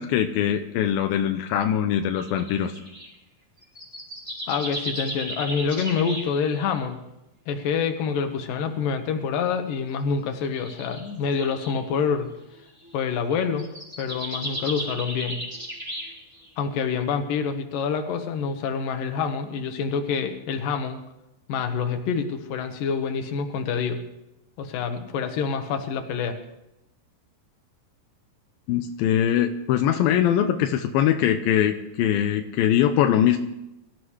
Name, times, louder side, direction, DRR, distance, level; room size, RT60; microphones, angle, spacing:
voice 1, 0.0-2.7 28.7-33.4, left 10 dB, 90° left, 6 dB, 2.5 m, -22 dB
sound 1, 2.2-3.1 3.6-6.8 8.4-8.5 9.3-9.6 10.4-11.8 12.7-12.9 13.4-16.5, equal, 5° right, 4.2 m, -35 dB
voice 2, 4.5-7.0 7.5-12.3 12.9-13.7 14.0-15.4 16.6-21.0 21.5-24.0 24.6-26.4, left 6 dB, 70° left, 6 dB, 2.9 m, -27 dB
23.0 x 14.0 x 3.2 m, 0.90 s
omnidirectional pair, 4.2 m